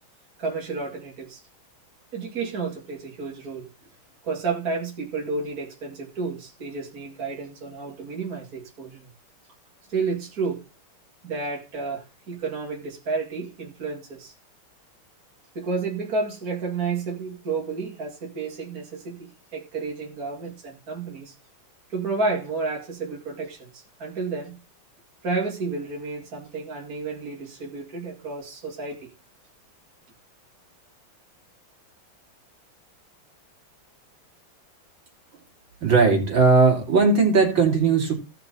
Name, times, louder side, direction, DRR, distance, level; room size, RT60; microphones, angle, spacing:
voice 1, 0.4-1.4 2.1-3.7 4.2-9.1 9.9-10.6 11.2-14.3 15.5-21.3 21.9-24.6 25.2-29.1, right 4 dB, 45° right, 2.6 m, -31 dB
voice 2, 35.8-38.1, right 4 dB, 60° right, 3.5 m, -18 dB
16.0 x 5.9 x 4.0 m
omnidirectional pair, 2.3 m